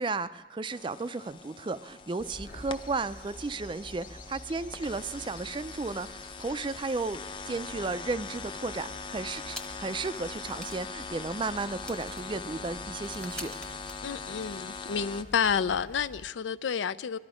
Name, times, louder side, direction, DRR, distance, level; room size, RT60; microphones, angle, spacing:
voice 1, 0.0-7.2 7.5-13.5, right 3 dB, 25° right, 0.4 m, -34 dB
sound 1, 0.7-15.2, left 5 dB, 25° left, 0.5 m, -42 dB
sound 2, 2.2-16.3, equal, 45° left, 1.0 m, -49 dB
sound 3, 9.5-10.0 10.3-10.4 10.6-14.7, left 1 dB, 5° left, 0.9 m, -47 dB
voice 2, 14.0-17.2, left 7 dB, 85° left, 0.4 m, -30 dB
22.5 x 11.5 x 5.0 m
head